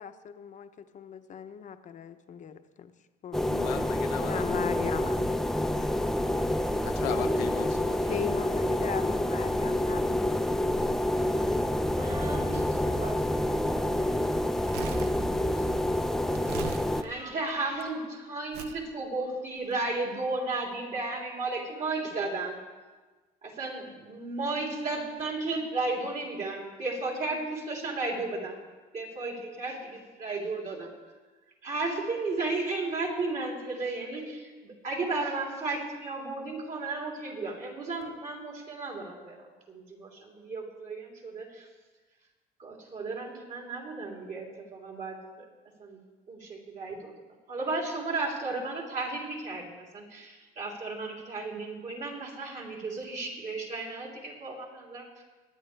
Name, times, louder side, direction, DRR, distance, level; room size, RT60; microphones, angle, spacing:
voice 1, 0.0-2.9 3.2-3.4 4.1-5.4 8.1-10.2, left 7 dB, 45° left, 9 dB, 0.8 m, -38 dB
sound 1, 3.3-17.0, left 1 dB, ahead, 0.5 m, -28 dB
voice 2, 3.5-4.4 6.8-8.0, left 11 dB, 90° left, 9 dB, 0.8 m, -37 dB
voice 3, 5.7-6.4 7.9-8.2 11.5-11.6 11.9-14.4 15.2-15.9 17.0-22.6 23.4-28.6 28.9-30.9 31.6-41.7 42.6-45.5 45.8-46.0 46.3-47.1 47.5-55.2, right 3 dB, 50° right, -2 dB, 3.6 m, -34 dB
Crumpling crinkling, 14.5-17.8 18.5-18.9 19.6-19.7, right 8 dB, 75° right, 0.8 m, -42 dB
22.0 x 9.8 x 3.4 m, 1.3 s
cardioid pair, 110°, 17 cm